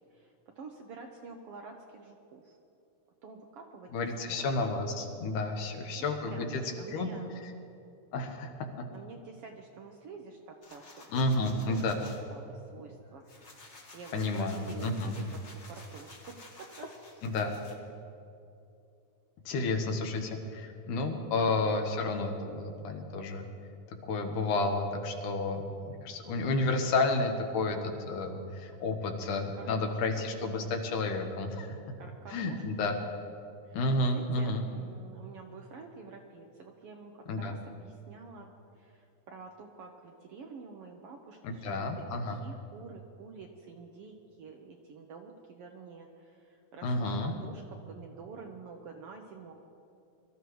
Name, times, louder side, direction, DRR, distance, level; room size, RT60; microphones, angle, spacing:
voice 1, 0.1-2.6 3.2-3.9 4.2-4.5 5.9-7.5 8.9-11.2 11.7-13.2 13.9-15.4 15.7-16.9 19.8-20.3 29.6-30.0 32.0-32.9 33.6-33.8 34.1-41.9 42.1-49.5, right 4 dB, 75° right, 2 dB, 1.4 m, -48 dB
voice 2, 3.9-6.6 6.9-7.1 8.1-8.9 11.1-12.0 14.1-15.2 17.2-17.6 19.5-23.4 23.9-31.8 32.3-33.0 33.7-34.6 37.3-37.5 41.4-42.4 46.8-47.3, left 2 dB, 85° left, 4 dB, 2.7 m, -31 dB
sound 1, 10.6-12.2 12.7-17.8, left 2 dB, 35° left, 1.1 m, -52 dB
23.0 x 13.5 x 3.1 m, 2.7 s
omnidirectional pair, 3.5 m